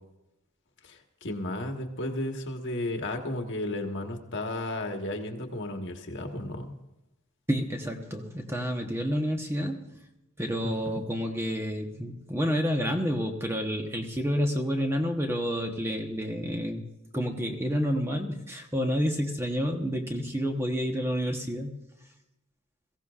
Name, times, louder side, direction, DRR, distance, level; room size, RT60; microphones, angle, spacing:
voice 1, 0.8-6.7 10.6-11.0, left 1 dB, 55° left, 4 dB, 1.4 m, -34 dB
voice 2, 7.5-9.9 10.4-16.8 17.1-21.7, equal, 10° right, 3 dB, 1.1 m, -29 dB
22.0 x 15.5 x 2.5 m, 0.95 s
head